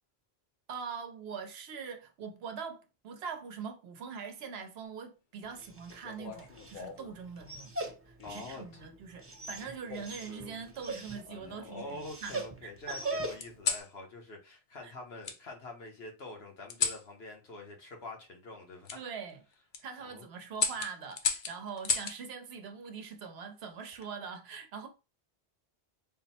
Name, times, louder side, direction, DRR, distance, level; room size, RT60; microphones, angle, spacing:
voice 1, 0.7-11.8 12.2-13.1 14.8-14.9 18.9-19.4 19.8-24.9, right 6 dB, 80° right, 0.9 m, -43 dB
Dog, 5.4-13.7, right 2 dB, 20° right, 0.5 m, -42 dB
sound 1, 6.0-7.2 8.2-8.6 9.9-10.6 11.3-12.2 13.4-13.9 15.2-15.4 16.7-17.1 18.8-19.0 19.5-19.8 20.5-22.2 23.7-24.1, left 6 dB, 55° left, 0.7 m, -35 dB
voice 2, 8.2-8.6 11.6-18.9 20.0-20.3, left 2 dB, 75° left, 1.2 m, -45 dB
3.9 x 2.0 x 4.1 m
omnidirectional pair, 1.0 m